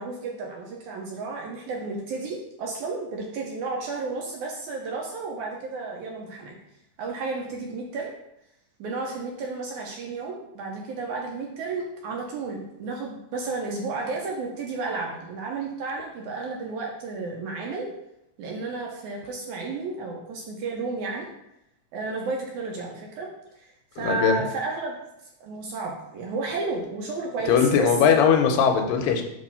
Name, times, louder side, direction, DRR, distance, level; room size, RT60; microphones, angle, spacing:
voice 1, 0.0-6.6 7.0-8.1 8.8-17.9 18.4-21.3 21.9-23.3 23.6-25.0 25.4-27.9, right 3 dB, 75° right, 0 dB, 1.9 m, -32 dB
voice 2, 24.0-24.4 27.5-29.2, left 7 dB, 80° left, 4 dB, 2.4 m, -20 dB
6.5 x 3.1 x 5.5 m, 0.82 s
omnidirectional pair, 4.0 m